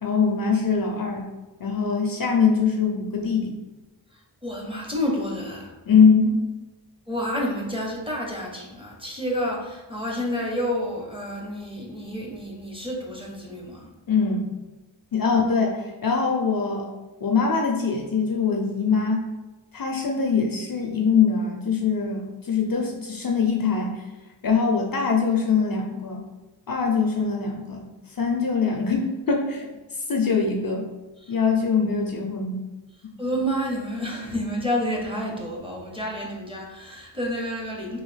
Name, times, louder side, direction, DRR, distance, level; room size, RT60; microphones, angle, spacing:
voice 1, 0.0-1.3 1.6-3.5 5.9-6.4 14.1-14.5 15.1-16.9 17.2-19.2 19.7-24.1 24.4-26.2 26.7-27.9 28.2-29.7 30.1-30.9 31.3-32.6, left 5 dB, 50° left, 1 dB, 0.5 m, -22 dB
voice 2, 4.1-5.7 7.1-13.9 15.3-15.4 31.2-31.3 33.2-38.0, equal, 10° right, -2 dB, 0.6 m, -29 dB
3.1 x 2.6 x 3.2 m, 1.1 s
wide cardioid pair, 95°, 46 cm